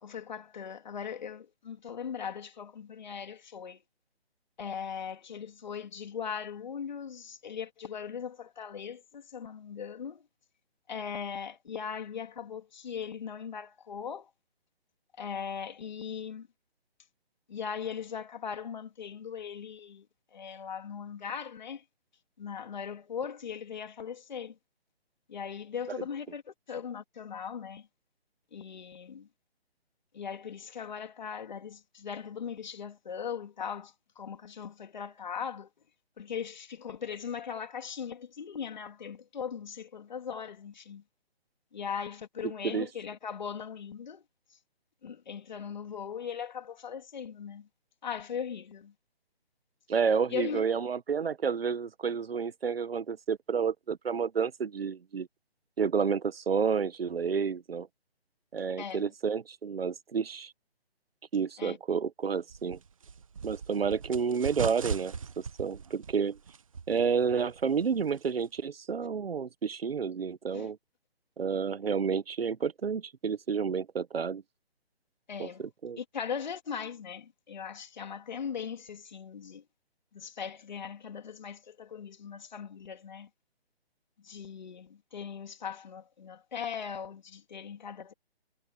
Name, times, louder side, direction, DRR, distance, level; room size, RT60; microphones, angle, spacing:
voice 1, 0.0-3.8 4.6-10.2 10.9-14.3 15.2-16.5 17.5-20.1 20.3-21.8 22.4-24.6 25.3-27.9 28.5-29.3 30.1-35.7 36.2-41.0 41.7-44.2 45.0-47.7 48.0-48.9 50.3-50.7 58.8-59.1 61.6-61.8 70.5-70.7 75.3-75.7 76.0-79.6 80.1-83.3 84.2-88.1, left 7 dB, 45° left, 2.9 m, -39 dB
voice 2, 49.9-55.3 55.8-57.9 58.5-60.5 61.3-62.8 63.4-66.4 66.9-70.8 71.4-74.4 75.4-76.0, right 6 dB, 65° right, 1.3 m, -30 dB
sound 1, 62.5-68.6, right 6 dB, 30° right, 1.1 m, -40 dB
hypercardioid pair, 170°, 32 cm